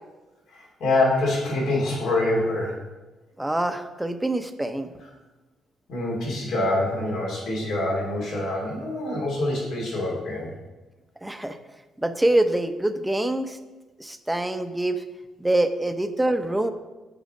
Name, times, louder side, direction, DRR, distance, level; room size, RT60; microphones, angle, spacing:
voice 1, 0.5-2.8 5.9-10.5, left 2 dB, 80° left, -3 dB, 2.9 m, -25 dB
voice 2, 3.4-4.9 11.2-11.6 12.0-13.6 14.0-15.0 15.4-16.7, right 1 dB, 10° right, 8 dB, 0.6 m, -25 dB
8.2 x 4.8 x 5.1 m, 1.2 s
cardioid pair, 90°, 0 cm